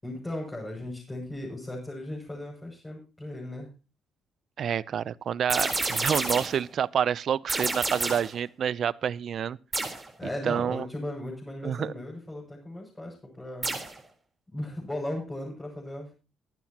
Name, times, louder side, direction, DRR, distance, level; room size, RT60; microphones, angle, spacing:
voice 1, 0.0-3.7 10.2-13.7 14.5-16.1, left 1 dB, 15° left, 6.9 m, -37 dB
voice 2, 4.6-9.6 10.4-10.8 11.6-11.9, right 8 dB, 60° right, 0.5 m, -28 dB
sound 1, 5.5-6.6 7.5-8.4 9.7-10.1 13.6-14.0, right 2 dB, 25° right, 3.8 m, -29 dB
23.5 x 9.4 x 2.9 m
cardioid pair, 90°, 0 cm